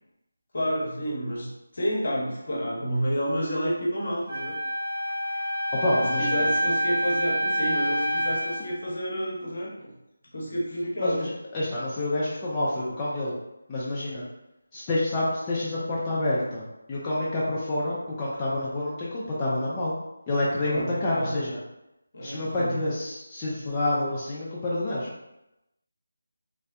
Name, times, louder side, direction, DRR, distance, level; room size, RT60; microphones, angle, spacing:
voice 1, 0.5-1.5 1.7-4.5 5.9-9.7 10.3-11.2 20.6-21.3 22.1-22.7, equal, 60° left, -3 dB, 0.8 m, -29 dB
Wind instrument woodwind instrument, 4.3-8.7, right 1 dB, 35° right, 1.1 m, -27 dB
voice 2, 5.7-6.5 11.0-13.3 13.7-14.2 14.7-16.6 16.9-19.9 20.3-21.6 22.2-25.1, left 1 dB, 15° left, -8 dB, 0.4 m, -28 dB
2.6 x 2.1 x 2.3 m, 0.91 s
figure-of-eight pair, 165°, 0 cm